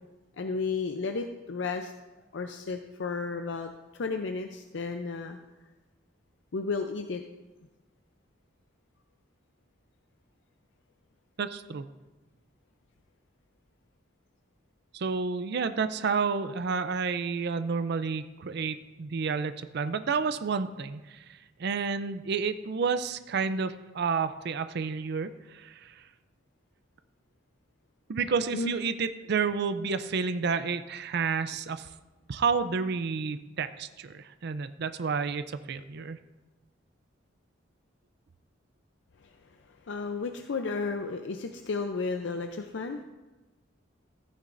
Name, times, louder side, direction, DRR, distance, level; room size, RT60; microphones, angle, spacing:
voice 1, 0.4-1.9 2.3-5.4 6.5-7.2 28.5-28.8 39.2-39.3 39.7-43.0, left 4 dB, 70° left, 5 dB, 0.5 m, -33 dB
voice 2, 11.4-11.9 14.9-21.2 21.6-26.0 28.1-31.9 32.3-36.2, right 5 dB, 60° right, 11 dB, 0.5 m, -30 dB
14.5 x 9.6 x 2.6 m, 1.1 s
head